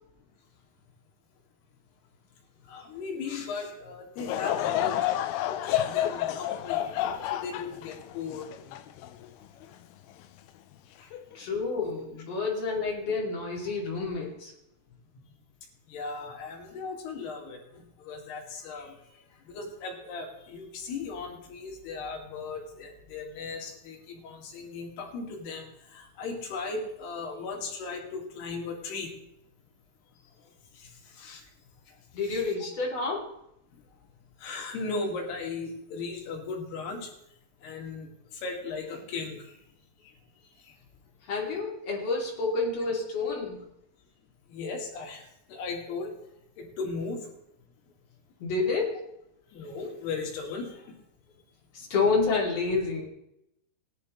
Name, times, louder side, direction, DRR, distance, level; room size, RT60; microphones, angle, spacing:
voice 1, 2.7-5.0 5.5-8.5 11.0-11.1 15.9-19.0 19.5-29.1 30.7-31.4 32.2-32.4 34.4-37.1 37.6-39.6 40.6-40.7 44.5-46.1 46.6-47.3 49.5-50.9, left 4 dB, 65° left, 1 dB, 3.8 m, -37 dB
Laughter / Crowd, 4.2-9.6 10.2-10.3 11.1-11.4, left 12 dB, 90° left, 2.2 m, -30 dB
voice 2, 11.3-14.5 32.1-33.3 41.2-43.6 48.4-49.0 51.7-53.1, left 4 dB, 40° left, -2 dB, 3.2 m, -29 dB
18.0 x 11.0 x 3.2 m, 0.80 s
omnidirectional pair, 5.4 m